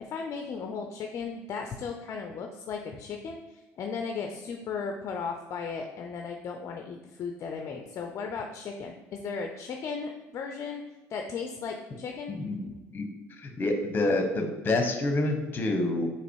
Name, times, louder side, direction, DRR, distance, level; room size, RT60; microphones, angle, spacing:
voice 1, 0.0-10.8 11.1-12.3, left 5 dB, 50° left, 3 dB, 0.4 m, -36 dB
voice 2, 12.3-13.0 13.4-16.1, left 2 dB, 30° left, 4 dB, 0.9 m, -28 dB
3.9 x 2.9 x 4.6 m, 1.1 s
supercardioid pair, 90°, 6 cm